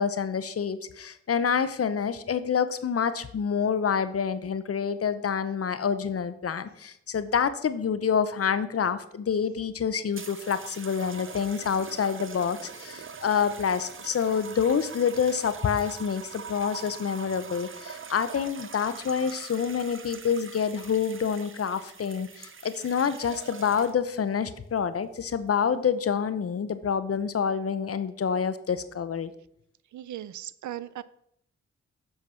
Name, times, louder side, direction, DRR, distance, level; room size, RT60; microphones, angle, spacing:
voice 1, 0.0-29.3, left 7 dB, 50° left, 13 dB, 0.7 m, -27 dB
sound 1, 10.1-24.2 25.0-25.4, right 6 dB, 45° right, 0.8 m, -43 dB
voice 2, 29.9-31.0, right 12 dB, 80° right, 17 dB, 0.5 m, -37 dB
7.6 x 4.6 x 5.7 m, 0.72 s
cardioid pair, 50°, 29 cm